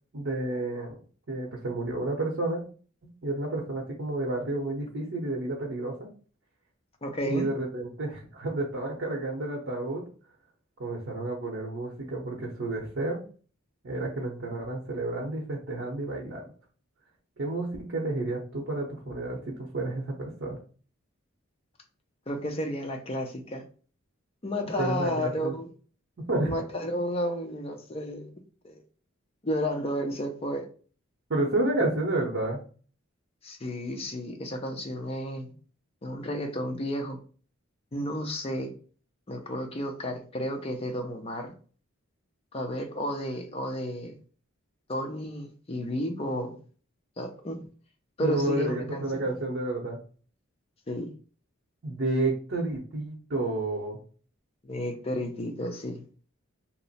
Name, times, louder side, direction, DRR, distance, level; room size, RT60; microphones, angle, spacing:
voice 1, 0.1-1.0 1.3-2.6 3.2-6.1 7.2-10.1 10.8-13.2 13.8-16.4 17.4-20.6 24.6-25.5 26.2-26.5 31.3-32.7 48.2-50.0 51.8-54.0, right 2 dB, 60° right, 0.8 m, -30 dB
voice 2, 7.0-7.5 22.3-23.6 24.4-25.7 26.4-28.3 28.6-28.8 29.4-30.7 33.4-35.5 36.0-37.2 37.9-38.7 39.3-41.5 42.5-44.2 44.9-46.6 47.2-47.6 48.2-49.2 50.9-51.1 54.6-56.0, equal, 30° left, 0.6 m, -32 dB
2.9 x 2.0 x 4.0 m
head